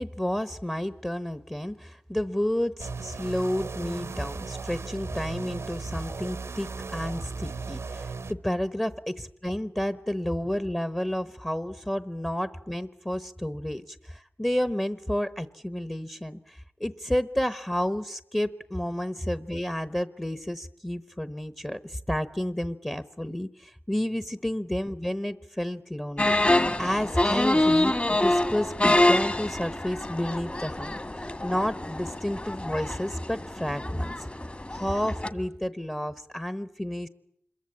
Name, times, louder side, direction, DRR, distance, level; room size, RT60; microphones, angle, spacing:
voice 1, 0.0-34.3 34.7-37.1, left 1 dB, 10° left, 13 dB, 1.0 m, -31 dB
sound 1, 2.8-8.3, right 4 dB, 85° right, 1.0 m, -36 dB
sound 2, 26.2-35.3, left 1 dB, 30° left, 1.8 m, -26 dB
26.5 x 22.5 x 8.5 m, 0.72 s
wide cardioid pair, 60°, 4 cm